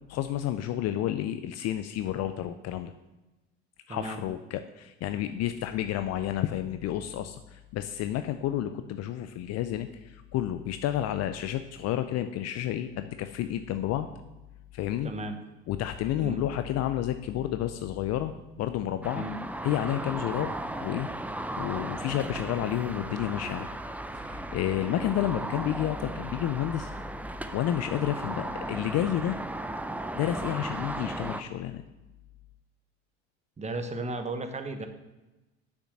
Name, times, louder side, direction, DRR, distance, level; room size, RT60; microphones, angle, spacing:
voice 1, 0.1-2.9 3.9-14.1 14.7-15.1 15.7-18.3 18.6-19.2 19.6-20.5 20.8-21.1 21.6-23.7 24.1-26.9 27.5-29.4 30.1-31.8, left 12 dB, 50° left, 10 dB, 0.6 m, -30 dB
voice 2, 3.9-4.2 15.0-15.4 16.2-16.4 19.1-19.4 33.6-34.9, right 2 dB, 20° right, 7 dB, 1.3 m, -34 dB
sound 1, 19.0-31.4, right 1 dB, 5° right, 0.5 m, -36 dB
6.5 x 6.0 x 7.4 m, 1.0 s
hypercardioid pair, 85°, 33 cm